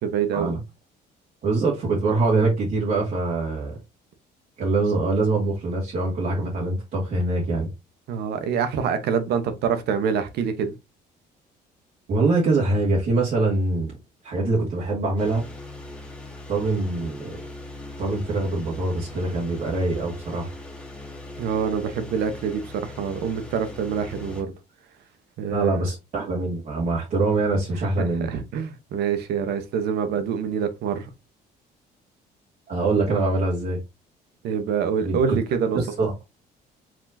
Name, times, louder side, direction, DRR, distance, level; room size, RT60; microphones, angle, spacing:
voice 1, 0.0-0.5 8.1-10.7 21.4-24.5 25.4-25.8 28.0-31.1 34.4-35.8, right 7 dB, 75° right, 0.9 m, -26 dB
voice 2, 1.4-3.7 4.6-7.7 12.1-13.9 14.2-15.5 16.5-17.4 18.0-20.5 25.5-28.3 32.7-33.8 35.0-35.4 35.7-36.1, right 3 dB, 55° right, 1.9 m, -24 dB
sound 1, 15.2-24.4, left 2 dB, 5° left, 1.5 m, -40 dB
5.0 x 3.6 x 2.7 m
cardioid pair, 110°, 17 cm